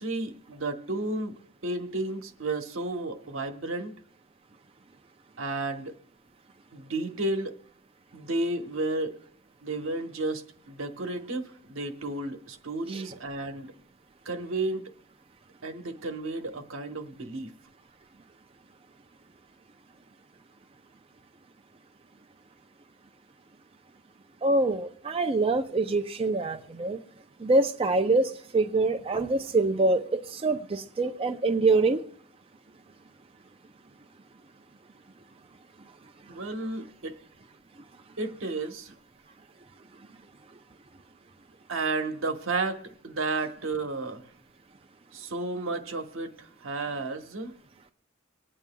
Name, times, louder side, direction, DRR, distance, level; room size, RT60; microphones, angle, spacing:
voice 1, 0.0-1.3 1.6-3.9 5.4-5.9 6.7-7.5 8.1-9.2 9.6-13.7 14.2-14.8 15.6-17.5 36.3-37.2 38.2-38.9 41.7-44.3 45.1-47.6, right 2 dB, 85° right, 1.2 m, -32 dB
voice 2, 24.4-27.0 27.4-32.0, right 2 dB, 30° right, 0.5 m, -25 dB
23.5 x 8.9 x 2.3 m
head